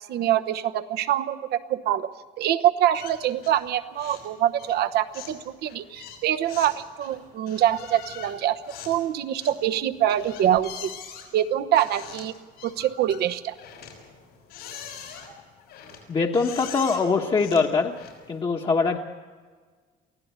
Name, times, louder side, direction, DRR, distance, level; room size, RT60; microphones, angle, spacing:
voice 1, 0.1-2.1 2.4-8.6 8.9-10.9 11.3-12.3 12.6-13.5, right 11 dB, 75° right, 10 dB, 1.0 m, -24 dB
sound 1, 2.9-3.7 3.9-4.3 4.6-18.4, left 8 dB, 85° left, 5.9 m, -43 dB
voice 2, 16.1-17.9 18.3-19.0, left 4 dB, 30° left, 1 dB, 1.2 m, -23 dB
23.5 x 15.5 x 8.2 m, 1.5 s
cardioid pair, 110°, 17 cm